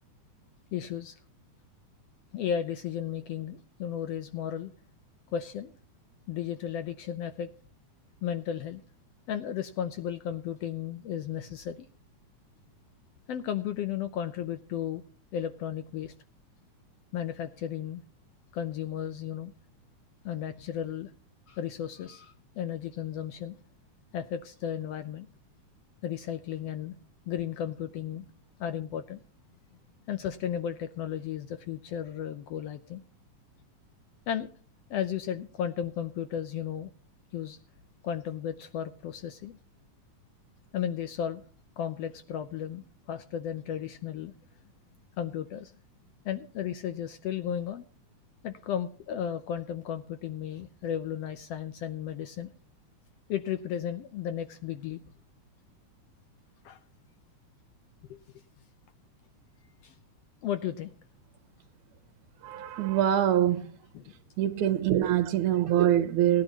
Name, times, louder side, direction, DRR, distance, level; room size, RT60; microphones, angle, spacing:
voice 1, 0.7-1.2 2.3-4.7 5.3-5.7 6.3-7.5 8.2-8.8 9.3-11.9 13.3-15.0 15.3-16.1 17.1-18.0 18.5-19.5 20.2-21.1 21.5-23.6 24.1-25.3 26.0-26.9 27.3-28.2 28.6-29.2 30.1-33.0 34.3-34.5 34.9-36.9 37.3-37.6 38.0-39.6 40.7-41.4 41.8-44.3 45.2-45.7 46.2-47.8 48.4-52.5 53.3-55.0 56.6-56.8 58.1-58.2 59.8-60.0 60.4-60.9 63.9-64.1, left 9 dB, 75° left, 1.5 m, -34 dB
voice 2, 62.4-63.7 64.4-66.4, right 11 dB, 80° right, 2.2 m, -24 dB
18.5 x 10.5 x 3.0 m
omnidirectional pair, 3.5 m